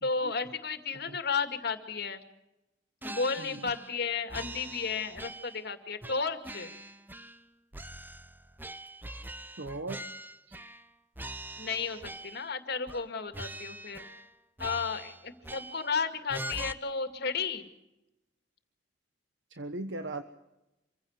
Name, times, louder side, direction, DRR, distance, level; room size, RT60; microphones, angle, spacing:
voice 1, 0.0-2.2 3.0-6.7 11.6-14.1 14.6-17.7, left 5 dB, 60° left, 8 dB, 2.3 m, -33 dB
sound 1, 3.0-4.0 4.3-5.7 6.0-7.4 7.7-10.9 11.1-12.5 12.9-13.1 13.3-14.3 14.6-16.0 16.3-16.7, right 1 dB, 10° right, 0.8 m, -43 dB
voice 2, 3.4-3.7 9.6-10.0 19.5-20.2, right 2 dB, 70° right, 8 dB, 1.2 m, -38 dB
26.5 x 16.0 x 8.1 m, 0.93 s
head